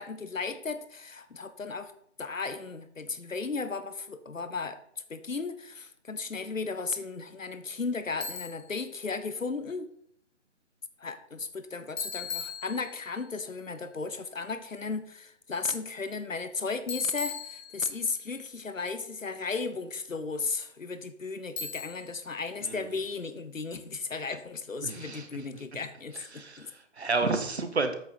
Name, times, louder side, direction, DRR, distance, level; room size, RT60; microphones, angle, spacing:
voice 1, 0.0-1.9 2.2-9.9 11.0-26.7, left 4 dB, 85° left, 1.0 m, -35 dB
Bicycle, 8.2-8.7 12.0-13.2 16.9-18.1 21.6-22.2, left 5 dB, 35° left, 1.8 m, -38 dB
voice 2, 24.8-25.3 25.5-25.6 26.1-27.9, right 3 dB, 55° right, 1.4 m, -31 dB
8.4 x 6.6 x 5.1 m
figure-of-eight pair, 145°, 38 cm